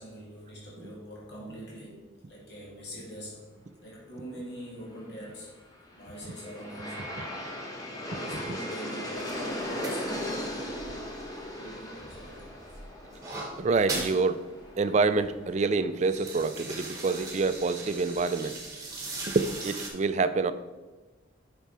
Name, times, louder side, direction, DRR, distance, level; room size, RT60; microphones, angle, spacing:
voice 1, 0.0-3.5 3.8-5.6 6.0-7.1 8.1-9.4 9.7-10.9 11.5-12.5 18.9-19.1, equal, 55° left, -5 dB, 2.3 m, -44 dB
Aircraft, 5.7-16.8, left 1 dB, 20° left, 1.0 m, -38 dB
sound 1, 9.1-11.7 12.0-14.2 14.6-14.7 14.9-15.3 15.8-19.9, right 2 dB, 15° right, 1.4 m, -39 dB
voice 2, 13.6-14.4 14.8-18.5 19.3-20.5, right 4 dB, 35° right, 12 dB, 0.3 m, -26 dB
7.0 x 6.0 x 4.3 m, 1.2 s
head